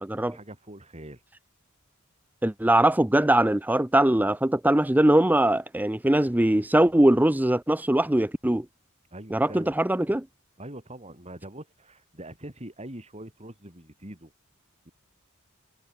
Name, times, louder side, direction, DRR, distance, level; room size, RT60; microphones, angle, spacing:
voice 1, 0.3-1.2 9.1-9.8 10.6-14.3 14.9-15.0, right 1 dB, 30° right, 6.0 m, -43 dB
voice 2, 2.4-8.7 9.3-10.3, right 1 dB, 10° right, 0.6 m, -21 dB
head